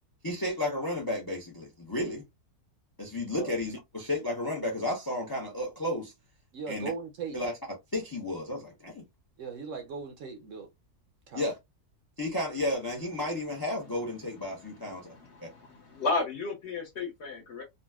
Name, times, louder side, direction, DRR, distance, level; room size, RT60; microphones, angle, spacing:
voice 1, 0.2-2.2 3.0-6.1 6.7-6.9 7.3-7.5 7.9-9.0 11.3-11.6 12.2-15.1 15.4-15.5, left 1 dB, 35° left, 0.3 m, -32 dB
voice 2, 6.5-7.4 9.4-10.7 11.3-11.5, right 5 dB, 65° right, 0.8 m, -38 dB
voice 3, 15.2-17.6, left 3 dB, 55° left, 0.8 m, -33 dB
3.9 x 2.1 x 2.2 m
omnidirectional pair, 1.7 m